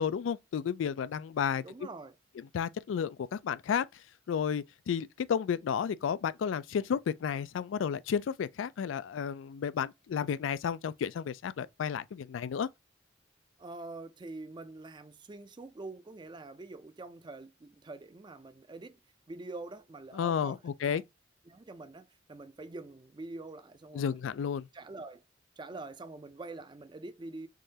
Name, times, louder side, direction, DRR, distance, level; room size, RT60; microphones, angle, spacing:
voice 1, 0.0-1.6 2.5-3.9 4.3-12.7 20.1-21.0 23.9-24.7, left 7 dB, 90° left, 0.3 m, -32 dB
voice 2, 1.6-2.2 13.6-19.0 19.3-21.0 21.5-24.3 24.7-25.2 25.6-27.5, right 2 dB, 25° right, 0.4 m, -45 dB
3.7 x 3.0 x 2.7 m
head